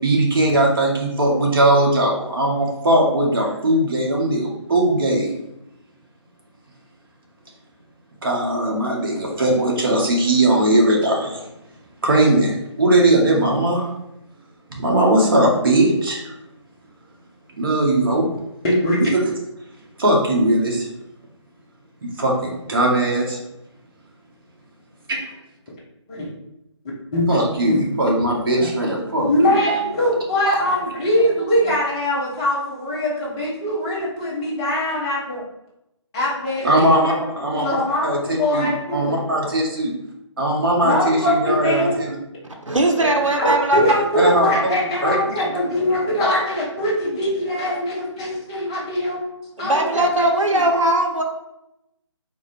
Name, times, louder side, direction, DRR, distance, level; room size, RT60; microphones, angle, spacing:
voice 1, 0.0-5.3 8.2-11.5 12.0-13.9 14.7-16.3 17.6-18.3 19.0-19.2 20.0-20.9 22.0-23.4 25.1-25.2 27.3-29.5 30.5-30.6 36.6-37.7 38.0-39.9 40.4-42.2 44.1-44.5 45.0-45.4, right 1 dB, 45° right, -1 dB, 1.0 m, -19 dB
voice 2, 18.6-19.0 26.1-26.3 27.1-27.3 27.7-27.8 29.2-35.4 36.1-37.1 37.5-39.2 40.8-41.9 43.0-49.2 49.6-51.0, left 1 dB, 10° left, -6 dB, 0.5 m, -22 dB
voice 3, 42.7-44.0 49.6-51.2, right 1 dB, 90° right, 2 dB, 0.6 m, -19 dB
3.8 x 2.6 x 3.2 m, 0.85 s
figure-of-eight pair, 155°, 16 cm